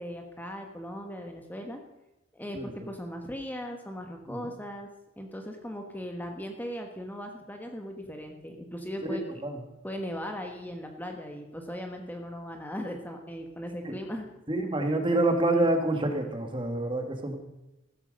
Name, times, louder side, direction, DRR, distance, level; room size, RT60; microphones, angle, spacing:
voice 1, 0.0-1.8 2.3-4.9 5.2-9.2 9.8-14.3, equal, 10° left, 3 dB, 1.3 m, -38 dB
voice 2, 9.1-9.6 13.8-13.9 14.5-17.4, right 2 dB, 25° right, 5 dB, 1.8 m, -27 dB
15.0 x 13.0 x 5.3 m, 0.95 s
head